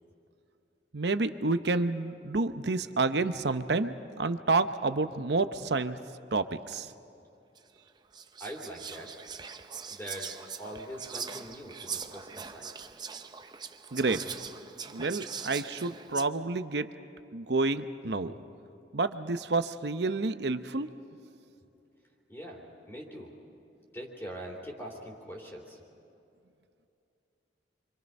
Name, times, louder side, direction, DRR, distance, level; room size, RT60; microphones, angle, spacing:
voice 1, 0.9-6.0 6.3-6.9 13.9-14.2 14.9-16.9 17.3-18.3 18.9-20.9, right 3 dB, 65° right, 10 dB, 0.8 m, -29 dB
Whispering, 7.6-7.7 8.1-16.2, right 6 dB, 25° right, 0.6 m, -41 dB
voice 2, 8.4-9.1 9.9-13.2 22.3-22.6 22.9-23.3 23.9-25.8, right 1 dB, 15° left, -3 dB, 3.3 m, -43 dB
29.5 x 25.0 x 5.4 m, 2.7 s
head